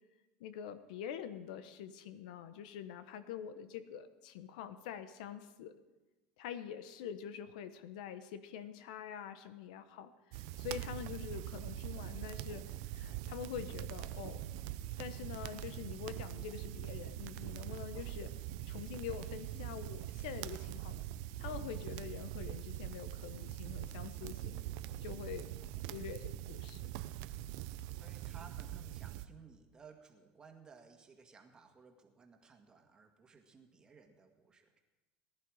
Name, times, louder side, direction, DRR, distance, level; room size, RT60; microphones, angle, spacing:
voice 1, 0.4-5.8 6.4-14.5 15.0-18.3 18.7-21.0 21.4-24.6 25.0-25.5 25.9-26.9, left 9 dB, 85° left, 12 dB, 1.0 m, -45 dB
sound 1, 10.3-29.3, right 13 dB, 70° right, 0.6 m, -43 dB
voice 2, 27.7-34.8, right 5 dB, 20° right, 4 dB, 1.8 m, -59 dB
19.0 x 11.0 x 4.9 m, 1.1 s
supercardioid pair, 130°, 4 cm